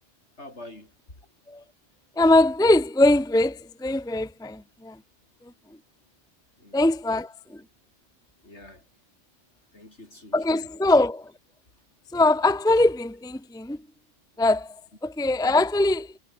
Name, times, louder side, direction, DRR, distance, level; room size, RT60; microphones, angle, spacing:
voice 1, 0.4-0.9 6.6-6.8 8.4-8.9 9.7-10.7, left 1 dB, 65° left, 7.0 m, -46 dB
voice 2, 2.2-5.0 6.7-7.6 10.3-11.3 12.1-13.8 14.4-16.1, left 2 dB, 5° left, 0.8 m, -22 dB
omnidirectional pair, 1.2 m